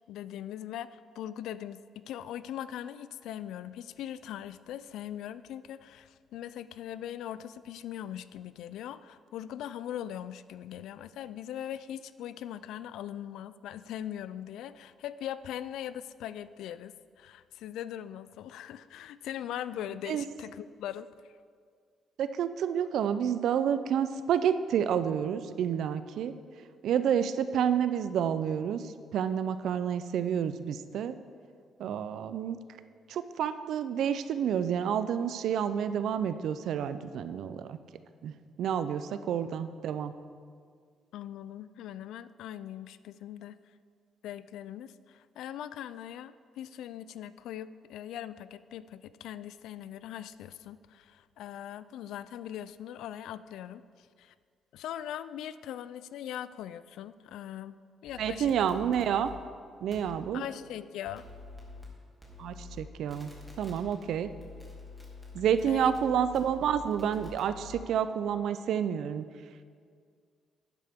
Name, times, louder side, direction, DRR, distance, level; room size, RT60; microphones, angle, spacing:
voice 1, 0.1-21.1 41.1-43.6 44.2-54.3 54.7-57.8 58.0-58.7 60.3-61.2 65.7-65.9, left 11 dB, 85° left, 15 dB, 0.3 m, -41 dB
voice 2, 22.2-26.3 26.8-31.2 31.8-32.6 33.1-37.8 38.2-38.3 38.6-40.1 58.2-59.3 59.8-60.4 62.4-63.3 63.6-64.3 65.3-69.2, right 8 dB, 75° right, 12 dB, 0.5 m, -29 dB
sound 1, 58.1-59.3 59.9-60.1 61.0-61.8 62.2-62.8 63.1-67.8, left 3 dB, 5° left, 2.5 m, -47 dB
11.5 x 9.8 x 3.6 m, 2.1 s
cardioid pair, 90°, 0 cm